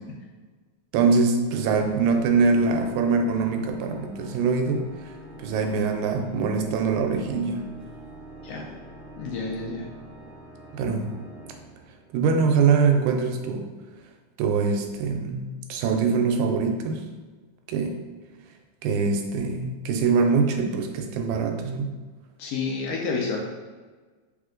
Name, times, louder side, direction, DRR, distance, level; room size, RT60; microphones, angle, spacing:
voice 1, 0.9-5.1 5.4-7.7 10.7-11.1 12.1-13.7 14.4-17.0 17.7-18.0 18.8-21.9, right 5 dB, 80° right, 4 dB, 1.9 m, -23 dB
Organ, 1.5-12.4, right 1 dB, 65° right, 1.5 m, -45 dB
voice 2, 9.2-9.9 22.4-23.4, left 4 dB, 80° left, -1 dB, 1.4 m, -29 dB
4.3 x 3.3 x 3.8 m, 1.3 s
omnidirectional pair, 3.4 m